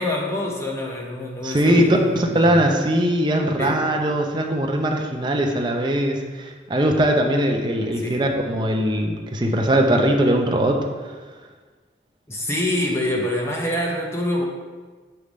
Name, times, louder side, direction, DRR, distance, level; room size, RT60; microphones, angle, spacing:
voice 1, 0.0-2.6 3.6-3.8 8.0-8.2 12.3-14.4, left 1 dB, 15° left, -1 dB, 0.7 m, -26 dB
voice 2, 1.4-10.9, right 1 dB, 25° right, 2 dB, 0.6 m, -20 dB
7.0 x 3.3 x 5.0 m, 1.4 s
head